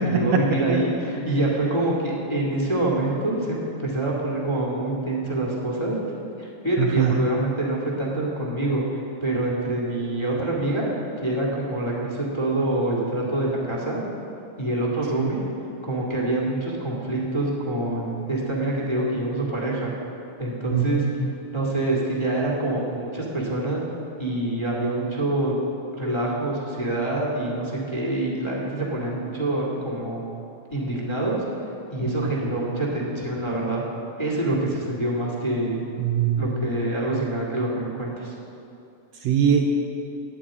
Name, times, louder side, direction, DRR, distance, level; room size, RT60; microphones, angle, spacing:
voice 1, 0.0-6.0 6.4-10.9 11.2-14.0 14.6-15.4 15.8-19.9 20.4-21.1 21.5-23.8 24.2-25.6 26.0-30.2 30.7-31.4 31.9-33.8 34.2-35.8 36.4-38.3, right 1 dB, 15° left, -4 dB, 1.2 m, -26 dB
voice 2, 6.8-7.2 15.2-15.3 20.7-21.1 32.2-32.3 36.0-36.7 39.2-39.7, right 8 dB, 75° right, 2 dB, 1.8 m, -22 dB
9.3 x 8.7 x 8.4 m, 2.8 s
omnidirectional pair, 3.5 m